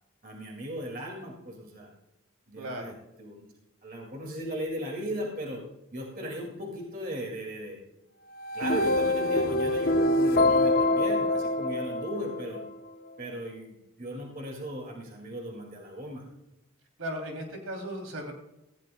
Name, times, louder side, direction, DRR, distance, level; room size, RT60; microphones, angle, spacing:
voice 1, 0.2-1.9 2.5-3.5 3.8-5.6 5.9-7.8 8.5-12.6 13.2-16.2, equal, 40° right, 0 dB, 2.2 m, -37 dB
voice 2, 2.6-2.9 17.0-18.3, equal, 75° right, 2 dB, 3.0 m, -36 dB
sound 1, 8.4-12.7, left 2 dB, 45° left, 0.7 m, -25 dB
17.5 x 15.5 x 2.3 m, 0.92 s
head